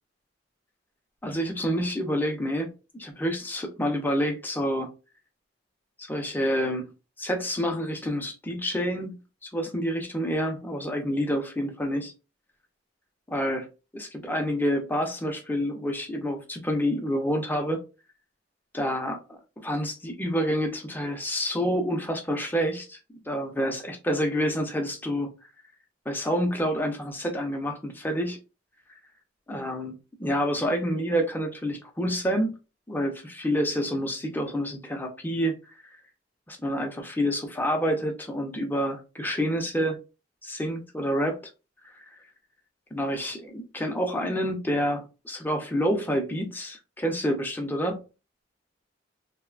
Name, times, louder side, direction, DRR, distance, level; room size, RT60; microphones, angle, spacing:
voice 1, 1.2-4.9 6.0-6.9 7.2-9.2 9.4-12.1 13.3-13.7 13.9-17.8 18.7-23.0 23.3-25.3 26.1-28.4 29.5-29.9 30.2-32.5 32.9-35.6 36.5-40.0 40.4-41.4 41.9-42.0 42.9-48.0, equal, 10° left, 0.5 m, -28 dB
3.0 x 2.1 x 2.3 m
head